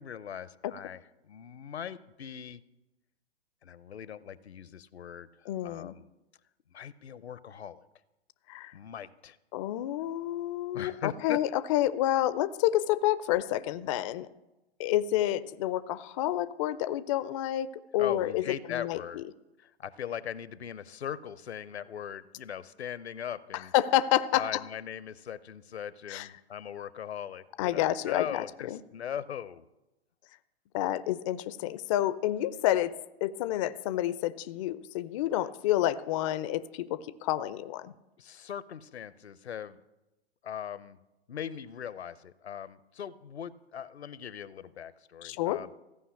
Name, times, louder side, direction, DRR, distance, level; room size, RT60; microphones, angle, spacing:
voice 1, 0.0-2.6 3.6-6.1 6.7-7.8 8.7-9.4 10.7-11.4 18.0-19.2 19.6-23.7 24.3-29.6 38.2-39.8 40.4-41.0 41.3-45.7, left 9 dB, 80° left, 17 dB, 0.7 m, -40 dB
voice 2, 5.5-5.9 8.5-8.7 9.5-14.3 14.8-19.2 23.7-24.4 26.1-26.3 27.6-28.4 28.7-28.8 30.7-32.9 33.2-37.9 45.2-45.6, left 13 dB, 30° left, 16 dB, 0.4 m, -29 dB
14.5 x 5.5 x 8.3 m, 0.99 s
figure-of-eight pair, 115°, 32 cm